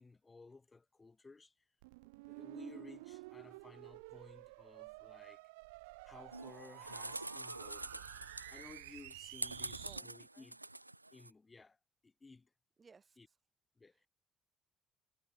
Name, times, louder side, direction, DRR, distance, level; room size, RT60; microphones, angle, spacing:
voice 1, 0.0-1.5 2.3-5.4 6.0-8.1 8.5-10.7 11.1-11.8 12.0-12.5 13.2-13.3 13.8-14.0, left 3 dB, 25° left, 1.6 m, -57 dB
sound 1, 1.8-10.0, right 25 dB, 70° right, 1.5 m, -52 dB
sound 2, 6.3-11.3, right 2 dB, 90° right, 0.6 m, -46 dB
voice 2, 9.7-10.5 12.8-13.4 13.9-14.1, right 5 dB, 30° right, 3.6 m, -63 dB
figure-of-eight pair, 50°, 0 cm